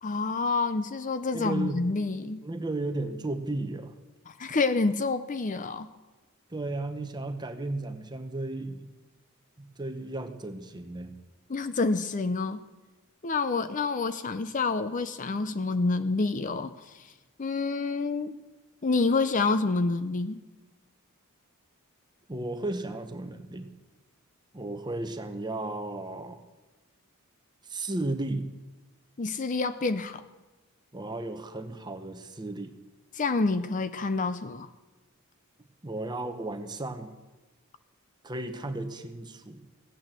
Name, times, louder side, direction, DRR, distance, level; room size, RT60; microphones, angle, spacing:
voice 1, 0.0-2.5 4.3-5.9 11.5-12.6 13.2-17.1 17.4-18.4 18.8-20.4 29.2-30.2 33.1-34.7, left 3 dB, 35° left, 12 dB, 0.5 m, -28 dB
voice 2, 1.3-1.8 2.4-3.9 6.5-8.9 9.6-11.2 22.3-23.7 24.5-26.4 27.6-28.5 30.9-32.7 35.8-37.1 38.2-39.6, right 2 dB, 20° right, 8 dB, 1.0 m, -34 dB
16.0 x 9.3 x 7.5 m, 1.2 s
head